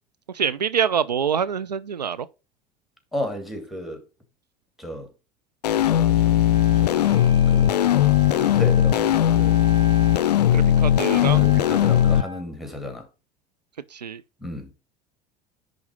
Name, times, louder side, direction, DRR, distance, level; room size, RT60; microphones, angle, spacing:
voice 1, 0.3-2.3 10.5-11.5 13.9-14.2, right 7 dB, 90° right, 0.4 m, -25 dB
voice 2, 3.1-4.0 4.8-5.1 5.9-6.4 6.8-7.8 8.3-9.7 11.3-13.1 14.4-14.7, left 1 dB, ahead, 2.8 m, -34 dB
sound 1, 5.6-12.2, left 11 dB, 80° left, 0.4 m, -18 dB
Wind instrument woodwind instrument, 6.5-12.5, left 3 dB, 25° right, 5.3 m, -40 dB
10.5 x 3.9 x 5.1 m
figure-of-eight pair, 65°, 20 cm